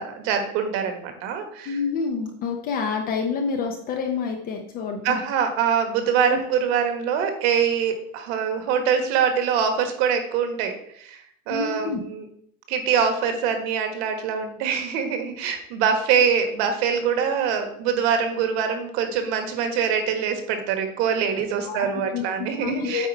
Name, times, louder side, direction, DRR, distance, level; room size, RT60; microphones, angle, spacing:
voice 1, 0.0-1.8 5.0-12.3 12.7-23.1, right 7 dB, 45° right, 6 dB, 1.4 m, -24 dB
voice 2, 1.7-5.2 6.3-6.4 11.5-12.0 21.6-22.2 22.6-23.1, left 5 dB, 20° left, 3 dB, 0.6 m, -28 dB
8.6 x 4.6 x 4.5 m, 0.68 s
supercardioid pair, 155°, 44 cm